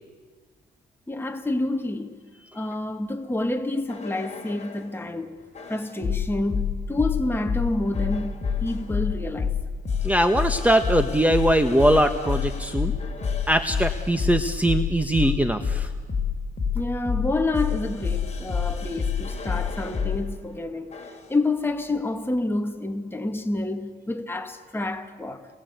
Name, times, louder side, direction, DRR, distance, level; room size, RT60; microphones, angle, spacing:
voice 1, 1.1-2.2 2.5-5.4 5.7-8.3 8.6-9.6 16.7-21.0 21.3-25.5, left 2 dB, 10° left, 2.0 m, -28 dB
sound 1, 3.9-4.9 5.5-20.2 20.9-21.3, left 6 dB, 35° left, 4.1 m, -28 dB
voice 2, 10.0-12.9 13.5-15.9, right 1 dB, 5° right, 1.4 m, -21 dB
29.0 x 22.0 x 8.3 m
cardioid pair, 90°, 20 cm